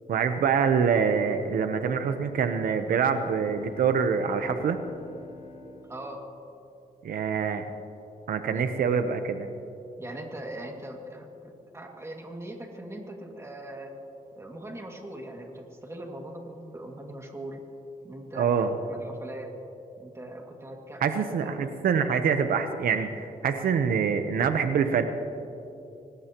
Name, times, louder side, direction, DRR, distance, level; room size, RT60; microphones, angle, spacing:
voice 1, 0.1-4.8 7.0-7.6 8.3-9.4 18.4-18.7 21.0-25.0, right 6 dB, 80° right, 8 dB, 0.9 m, -25 dB
sound 1, 2.9-6.9, left 2 dB, 60° left, 3.8 m, -48 dB
voice 2, 5.9-6.3 8.5-8.6 10.0-13.9 14.4-17.6 18.0-19.5 20.0-21.6, right 1 dB, 20° right, 1 dB, 2.2 m, -40 dB
24.0 x 19.5 x 3.0 m, 2.8 s
wide cardioid pair, 125°, 15 cm